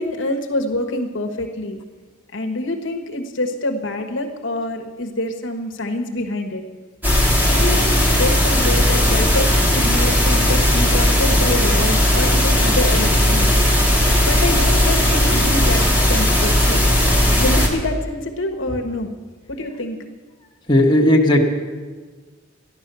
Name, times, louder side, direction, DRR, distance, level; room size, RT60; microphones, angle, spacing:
voice 1, 0.0-1.8 2.3-6.6 7.5-13.5 14.2-16.8 17.4-19.1 19.5-20.0, left 1 dB, 80° left, 3 dB, 1.4 m, -26 dB
sound 1, 7.0-17.7, left 1 dB, 10° right, 2.1 m, -16 dB
voice 2, 20.7-21.4, left 1 dB, 25° left, -2 dB, 1.5 m, -14 dB
13.5 x 11.0 x 6.8 m, 1.4 s
head